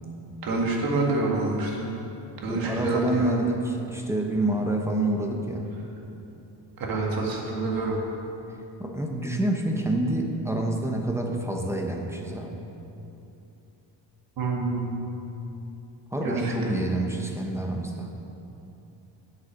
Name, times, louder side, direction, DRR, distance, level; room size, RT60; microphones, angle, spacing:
voice 1, 0.4-1.9 2.4-3.3 6.8-8.0 14.4-15.0 16.2-16.5, right 2 dB, 50° right, -1 dB, 1.9 m, -27 dB
voice 2, 2.5-5.7 8.8-12.6 16.1-18.1, right 1 dB, 5° right, 1 dB, 0.7 m, -27 dB
9.4 x 8.1 x 6.3 m, 2.9 s
cardioid pair, 175°, 44 cm